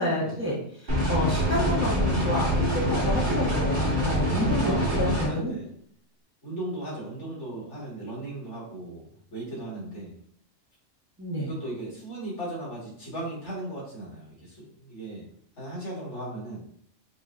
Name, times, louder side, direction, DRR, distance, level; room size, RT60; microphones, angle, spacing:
voice 1, 0.0-5.5 11.2-11.5, equal, 10° right, -7 dB, 1.0 m, -29 dB
sound 1, 0.9-5.3, equal, 40° right, 1.5 m, -25 dB
voice 2, 4.6-5.7 6.4-10.1 11.4-15.3 15.6-16.6, right 1 dB, 60° left, -6 dB, 2.1 m, -37 dB
5.5 x 2.9 x 2.5 m, 0.64 s
omnidirectional pair, 1.4 m